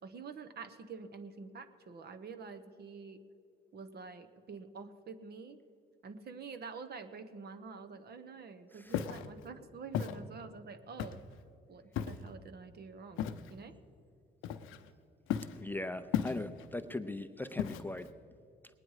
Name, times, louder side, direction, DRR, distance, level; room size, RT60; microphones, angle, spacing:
voice 1, 0.0-3.2 3.7-5.6 6.0-11.2 11.7-13.8, right 5 dB, 55° right, 11 dB, 1.0 m, -47 dB
Walk footsteps, 8.9-9.3 9.9-10.2 11.0-11.3 12.0-12.3 13.2-13.5 14.4-14.9 15.3-15.6 16.1-16.7 17.6-18.1, left 9 dB, 85° left, 0.6 m, -35 dB
voice 2, 15.6-18.1, left 2 dB, 10° left, 9 dB, 0.5 m, -39 dB
20.0 x 9.7 x 4.8 m, 2.5 s
cardioid pair, 90°, 20 cm